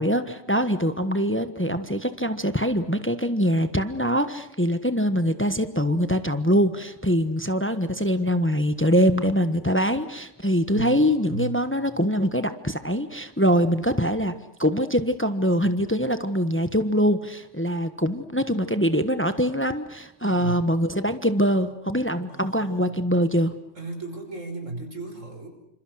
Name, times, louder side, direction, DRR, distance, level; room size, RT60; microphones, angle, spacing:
voice 1, 0.0-14.3 14.6-23.5, equal, 10° left, 10 dB, 1.2 m, -23 dB
voice 2, 10.7-11.6 20.2-20.7 22.3-22.8 23.8-25.5, right 2 dB, 90° right, 5 dB, 5.9 m, -35 dB
28.0 x 27.0 x 6.4 m, 0.79 s
omnidirectional pair, 1.3 m